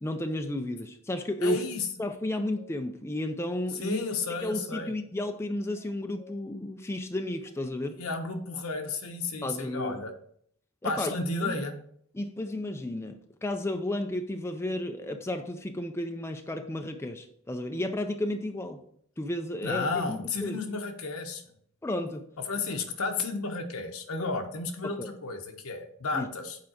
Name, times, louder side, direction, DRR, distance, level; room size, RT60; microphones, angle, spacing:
voice 1, 0.0-1.6 2.0-4.0 4.4-8.0 9.4-10.0 10.8-11.1 11.4-11.6 12.1-18.8 19.2-20.6 21.8-22.3 24.8-25.1 26.1-26.3, left 1 dB, 10° left, 6 dB, 0.4 m, -33 dB
voice 2, 1.4-1.8 3.8-4.9 8.0-10.1 10.8-11.8 19.6-21.4 22.5-26.6, left 3 dB, 75° left, 5 dB, 1.1 m, -32 dB
sound 1, 2.1-2.7 4.2-4.9 5.7-6.4, left 3 dB, 5° right, 2.2 m, -54 dB
7.4 x 4.7 x 4.4 m, 0.66 s
head